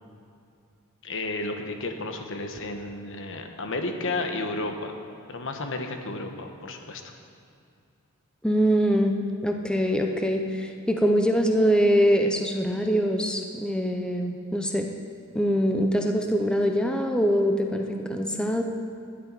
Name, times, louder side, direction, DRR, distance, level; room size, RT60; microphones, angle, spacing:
voice 1, 1.0-4.9 5.3-7.0, left 2 dB, 65° left, 5 dB, 1.2 m, -32 dB
voice 2, 8.4-14.9 15.3-18.6, equal, 5° left, 3 dB, 0.6 m, -23 dB
12.0 x 6.7 x 9.7 m, 2.5 s
head